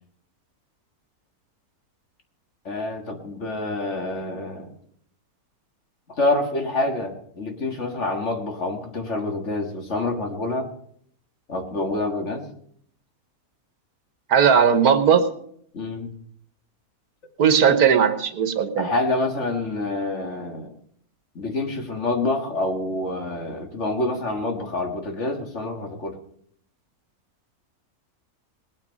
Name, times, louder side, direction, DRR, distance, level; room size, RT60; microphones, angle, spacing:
voice 1, 2.7-4.7 6.1-10.7 11.5-12.5 15.7-16.1 18.8-20.7 21.4-26.2, left 2 dB, 50° left, 3 dB, 2.0 m, -27 dB
voice 2, 14.3-15.2 17.4-18.9, right 7 dB, 80° right, 9 dB, 1.6 m, -17 dB
20.0 x 8.7 x 5.2 m, 0.65 s
omnidirectional pair, 1.6 m